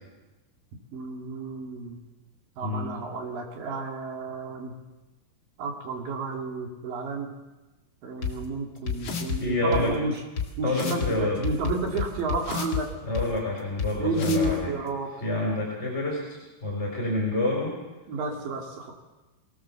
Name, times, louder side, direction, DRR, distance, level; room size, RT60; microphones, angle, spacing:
voice 1, 0.9-2.0 2.6-4.7 5.6-7.3 8.0-10.2 10.6-12.9 14.0-15.1 18.1-18.9, right 3 dB, 55° right, 2 dB, 3.8 m, -31 dB
sound 1, 8.2-8.3 8.9-9.4 9.7-9.8 10.4-10.5 10.7-11.1 11.4-12.8 13.1-13.2 13.8-13.9 14.2-14.5, left 6 dB, 45° left, 1.8 m, -29 dB
voice 2, 9.3-9.9 10.6-11.4 13.0-14.8 15.2-17.8, left 2 dB, 15° left, -2 dB, 3.7 m, -28 dB
23.0 x 17.0 x 7.0 m, 1.1 s
omnidirectional pair, 5.2 m